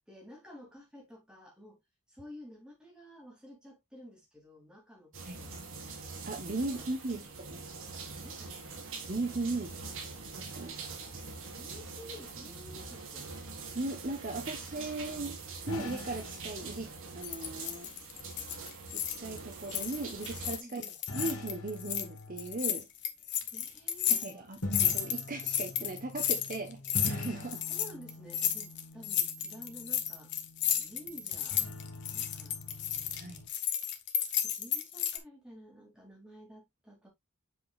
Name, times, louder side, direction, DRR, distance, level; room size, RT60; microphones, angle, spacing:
voice 1, 0.0-1.8 2.1-5.6 6.6-7.3 8.2-9.0 10.6-10.9 11.5-13.3 20.6-21.0 23.5-24.5 27.7-30.3 30.8-31.6 32.1-32.6 34.4-37.1, equal, 5° right, 3.8 m, -52 dB
sound 1, 5.1-20.6, right 4 dB, 60° right, 2.3 m, -44 dB
voice 2, 6.3-7.6 9.1-9.8 10.3-10.7 13.7-15.4 15.7-17.9 18.9-20.8 21.1-22.8 24.1-27.6 33.1-33.5, right 2 dB, 40° right, 1.2 m, -38 dB
sound 2, 15.6-17.3 21.1-22.7 24.6-33.5, left 1 dB, 80° left, 2.7 m, -43 dB
sound 3, 17.2-19.4 19.6-22.0 22.4-35.2, left 10 dB, 50° left, 1.2 m, -33 dB
7.6 x 6.1 x 2.5 m
head